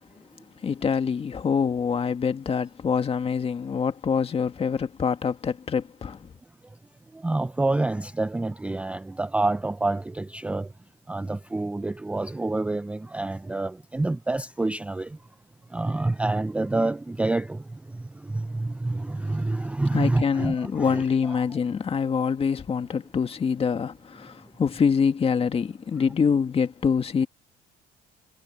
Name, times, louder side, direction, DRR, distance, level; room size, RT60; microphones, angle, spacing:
voice 1, 0.6-6.3 19.9-27.3, left 6 dB, 35° left, 1.8 m, -25 dB
voice 2, 7.1-10.7 11.1-15.2 15.7-21.4, right 2 dB, 5° right, 0.4 m, -28 dB
cardioid pair, 110°, 17 cm